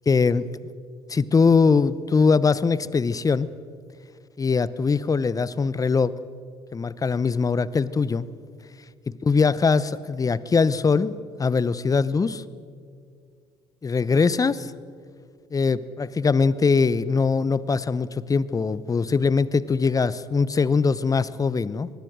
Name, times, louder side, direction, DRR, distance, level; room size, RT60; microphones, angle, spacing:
voice 1, 0.1-0.6 1.1-3.5 4.4-6.1 6.7-8.3 9.2-12.4 13.8-14.7 15.5-21.9, left 4 dB, 25° left, 18 dB, 0.9 m, -22 dB
25.0 x 20.5 x 6.3 m, 2.2 s
hypercardioid pair, 55°, 14 cm